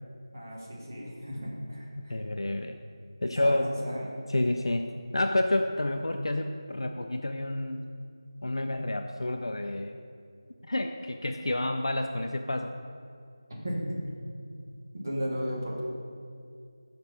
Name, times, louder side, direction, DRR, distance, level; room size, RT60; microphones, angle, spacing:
voice 1, 0.3-2.1 3.2-4.1 13.6-14.0 14.9-15.8, equal, 30° right, -4 dB, 1.5 m, -35 dB
voice 2, 2.0-2.8 3.2-3.7 4.3-4.9 5.1-7.9 8.4-10.0 10.6-12.7, left 1 dB, 65° left, 6 dB, 0.4 m, -29 dB
6.5 x 5.1 x 5.8 m, 2.3 s
figure-of-eight pair, 175°, 3 cm